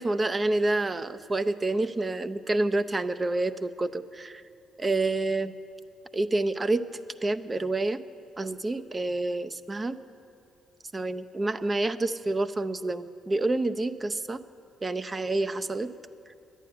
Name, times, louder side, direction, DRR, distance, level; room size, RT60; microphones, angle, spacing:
voice 1, 0.0-4.4 4.8-5.5 6.1-6.9 7.2-8.0 8.4-10.0 10.9-14.4 14.8-15.9, right 2 dB, 30° right, 12 dB, 0.6 m, -28 dB
10.5 x 9.1 x 9.5 m, 2.5 s
supercardioid pair, 70°, 0 cm